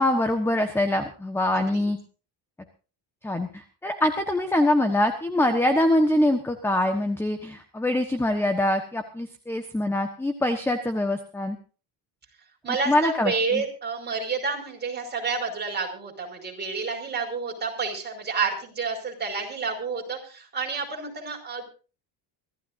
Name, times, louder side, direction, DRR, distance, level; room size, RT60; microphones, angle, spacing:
voice 1, 0.0-2.0 3.2-11.6 12.7-13.6, left 1 dB, 5° left, 7 dB, 1.2 m, -24 dB
voice 2, 12.6-21.7, right 4 dB, 20° right, 1 dB, 5.4 m, -29 dB
25.0 x 14.5 x 2.7 m, 0.36 s
cardioid pair, 145°, 48 cm